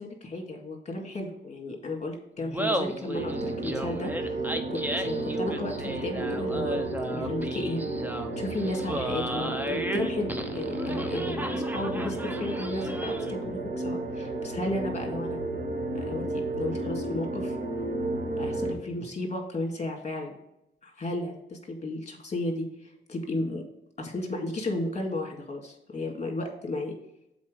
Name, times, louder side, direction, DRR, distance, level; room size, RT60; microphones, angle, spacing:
voice 1, 0.0-4.4 4.7-6.8 7.1-7.8 8.4-15.4 15.9-17.6 18.4-20.3 20.8-23.6 24.0-27.0, left 2 dB, 35° left, 2 dB, 1.9 m, -34 dB
Laughter, 2.4-13.4, right 1 dB, 10° right, 0.7 m, -34 dB
sound 1, 3.1-18.7, right 2 dB, 55° right, 2.0 m, -32 dB
7.3 x 4.3 x 5.0 m, 0.81 s
cardioid pair, 100°, 20 cm